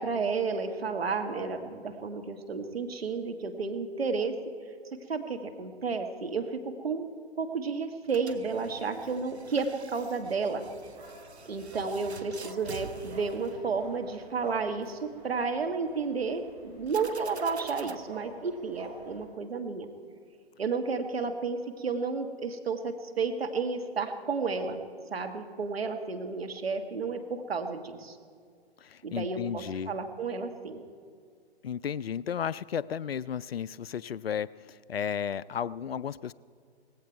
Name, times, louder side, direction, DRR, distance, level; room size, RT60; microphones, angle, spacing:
voice 1, 0.0-4.4 5.1-7.1 7.4-10.6 11.5-19.9 20.6-24.8 25.1-28.2 29.0-30.8, right 4 dB, 65° right, 6 dB, 1.6 m, -32 dB
sound 1, 8.0-14.2 16.9-18.0, right 5 dB, 80° right, 0.9 m, -47 dB
sound 2, 10.2-19.2, right 2 dB, 20° right, 2.8 m, -48 dB
voice 2, 28.8-29.9 31.6-36.3, left 8 dB, 65° left, 19 dB, 0.5 m, -34 dB
18.5 x 16.0 x 4.6 m, 2.1 s
figure-of-eight pair, 125°, 32 cm